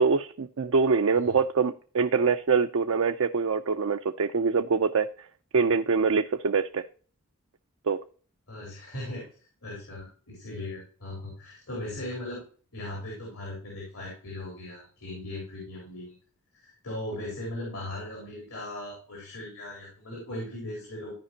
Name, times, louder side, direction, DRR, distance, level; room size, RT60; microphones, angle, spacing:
voice 1, 0.0-5.1 5.5-6.8 7.9-8.0, right 5 dB, 65° right, 6 dB, 0.5 m, -24 dB
voice 2, 8.5-9.3 9.6-12.4 12.7-16.2 16.5-21.1, left 1 dB, 85° left, -3 dB, 4.0 m, -38 dB
14.5 x 5.1 x 2.8 m, 0.41 s
head